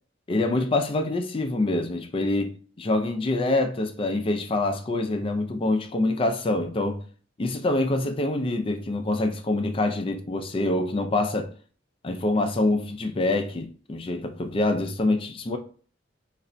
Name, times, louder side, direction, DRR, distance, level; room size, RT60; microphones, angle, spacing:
voice 1, 0.3-7.0 7.4-11.5 12.0-15.6, left 2 dB, 30° left, 0.4 m, -25 dB
2.4 x 2.1 x 3.8 m
head